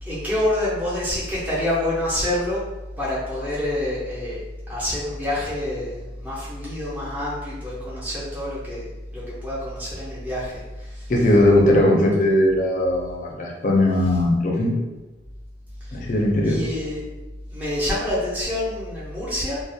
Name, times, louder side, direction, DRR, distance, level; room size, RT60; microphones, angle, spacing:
voice 1, 0.0-2.6 3.0-4.4 4.7-11.1 15.8-16.0 16.4-17.0 17.5-19.6, left 1 dB, 10° right, -9 dB, 0.5 m, -27 dB
voice 2, 11.1-14.8 15.9-16.6, left 1 dB, 45° left, 0 dB, 0.4 m, -19 dB
2.3 x 2.0 x 2.6 m, 1.1 s
head